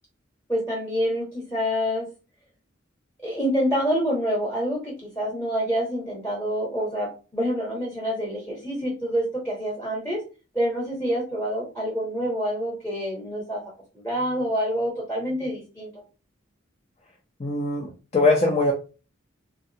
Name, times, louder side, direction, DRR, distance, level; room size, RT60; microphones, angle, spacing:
voice 1, 0.5-2.1 3.2-10.2 10.5-13.6 13.9-15.9, equal, 10° left, -3 dB, 0.8 m, -27 dB
voice 2, 17.4-18.7, left 2 dB, 30° left, 0 dB, 0.4 m, -22 dB
3.4 x 2.2 x 2.7 m, 0.33 s
head